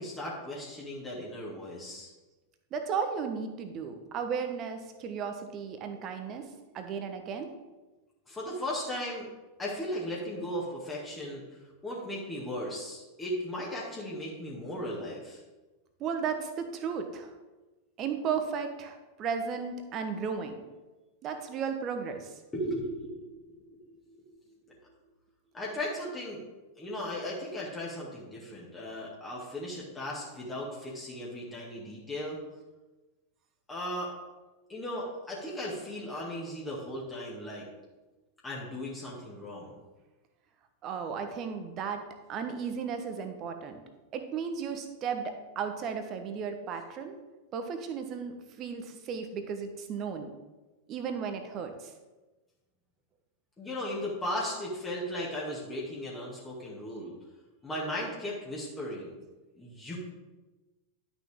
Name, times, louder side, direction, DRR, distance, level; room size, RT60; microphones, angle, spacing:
voice 1, 0.0-2.1 8.3-9.3 9.6-11.4 11.8-15.4 22.5-24.8 25.5-26.4 26.8-32.4 33.7-34.1 34.7-37.7 38.4-39.8 53.6-57.2 57.6-59.1 59.5-60.0, left 1 dB, 15° left, -5 dB, 2.1 m, -37 dB
voice 2, 2.7-7.5 16.0-17.3 18.0-20.6 21.2-22.3 40.8-42.0 42.3-43.8 44.1-47.1 47.5-50.3 50.9-51.9, right 6 dB, 35° right, 7 dB, 1.1 m, -35 dB
11.5 x 6.1 x 3.6 m, 1.2 s
figure-of-eight pair, 90°, 0 cm